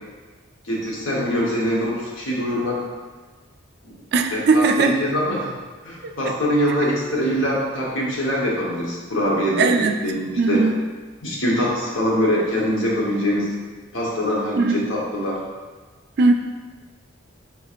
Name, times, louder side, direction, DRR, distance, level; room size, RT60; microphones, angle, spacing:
voice 1, 0.6-2.8 3.8-4.0 4.3-5.5 5.8-10.6 11.2-13.5 13.9-15.4, equal, 80° left, -4 dB, 1.1 m, -23 dB
voice 2, 4.1-4.9 6.0-6.1 9.6-9.9 10.4-10.8 14.6-14.9 16.2-16.3, right 3 dB, 55° right, 6 dB, 0.3 m, -18 dB
3.7 x 2.4 x 4.4 m, 1.3 s
head